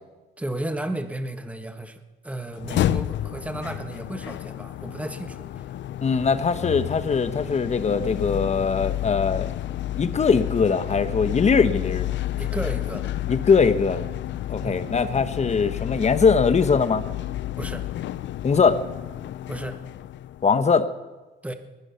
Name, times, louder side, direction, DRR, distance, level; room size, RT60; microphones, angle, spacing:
voice 1, 0.4-5.4 12.4-13.1 14.6-14.8 17.6-17.9 19.5-19.8 21.4-21.5, right 1 dB, 5° right, 7 dB, 1.4 m, -33 dB
sound 1, 2.5-20.7, left 13 dB, 65° left, 0.5 m, -30 dB
voice 2, 6.0-9.5 10.0-12.1 13.3-14.1 14.5-17.0 18.4-18.8 20.4-20.9, left 5 dB, 35° left, 11 dB, 1.0 m, -21 dB
20.5 x 10.5 x 5.7 m, 1.2 s
cardioid pair, 90°, 20 cm